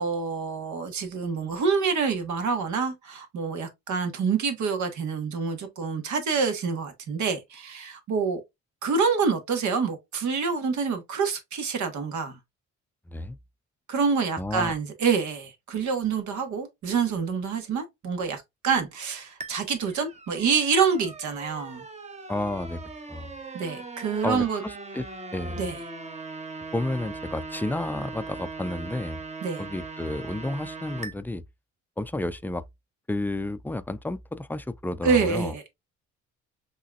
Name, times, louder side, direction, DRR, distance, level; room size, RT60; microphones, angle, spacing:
voice 1, 0.0-8.4 8.8-12.4 13.9-21.8 23.5-24.6 25.6-25.8 29.4-29.6 35.0-35.7, right 5 dB, 70° right, 1.5 m, -27 dB
voice 2, 13.1-13.4 14.4-14.7 22.3-22.8 23.1-23.3 24.2-25.1 25.3-25.7 26.7-29.2 29.6-31.4 32.0-32.6 33.1-35.5, left 2 dB, 5° left, 0.4 m, -31 dB
sound 1, 19.4-31.1, right 3 dB, 20° right, 1.0 m, -40 dB
5.5 x 3.1 x 2.4 m
cardioid pair, 90°, 30 cm